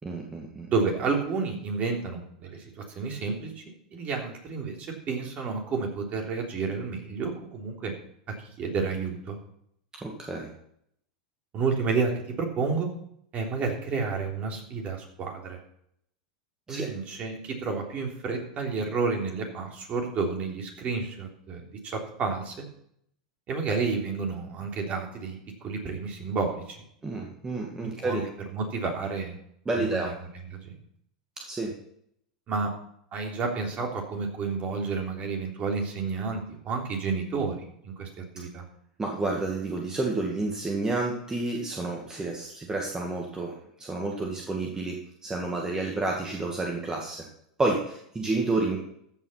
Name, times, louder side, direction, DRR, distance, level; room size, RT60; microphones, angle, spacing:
voice 1, 0.0-0.7 10.0-10.5 16.7-16.9 27.0-28.2 29.7-30.1 31.5-31.7 39.0-47.2 47.6-48.8, right 2 dB, 15° right, 0 dB, 2.1 m, -30 dB
voice 2, 0.7-3.6 3.9-7.9 8.4-9.4 11.5-12.1 12.4-12.9 13.3-15.6 16.7-22.6 23.5-26.8 27.8-28.2 28.5-29.4 29.7-30.7 32.5-32.7 33.1-38.7, right 4 dB, 35° right, 1 dB, 3.4 m, -30 dB
15.0 x 6.0 x 5.8 m, 0.71 s
hypercardioid pair, 100°, 4 cm